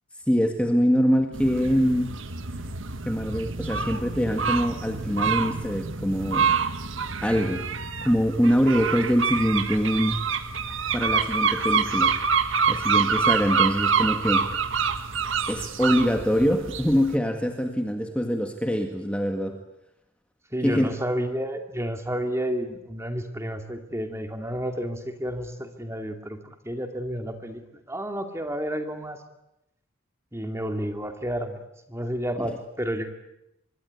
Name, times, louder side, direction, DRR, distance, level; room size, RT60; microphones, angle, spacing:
voice 1, 0.3-2.2 3.1-6.5 7.2-7.7 8.0-10.2 10.9-12.2 12.7-14.5 15.5-19.6 20.6-20.9, equal, 5° left, 4 dB, 1.9 m, -24 dB
sound 1, 1.3-17.1, right 5 dB, 65° right, 1.6 m, -26 dB
voice 2, 20.5-26.4 26.6-27.6 27.9-29.2 30.3-31.6 31.9-33.1, equal, 15° right, 6 dB, 2.5 m, -30 dB
25.0 x 22.5 x 9.5 m, 0.86 s
head